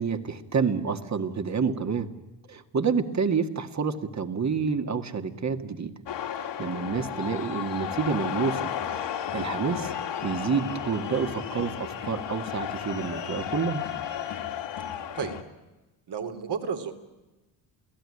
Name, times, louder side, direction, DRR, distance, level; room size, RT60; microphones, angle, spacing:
voice 1, 0.0-2.1 2.5-5.9 6.4-8.7 9.3-9.9 10.2-13.8, right 5 dB, 35° right, 8 dB, 2.1 m, -28 dB
sound 1, 6.1-15.4, left 9 dB, 65° left, 2.5 m, -33 dB
voice 2, 14.9-15.4 16.1-16.9, right 6 dB, 60° right, 7 dB, 3.4 m, -32 dB
29.0 x 17.5 x 10.0 m, 1.1 s
cardioid pair, 95°, 45 cm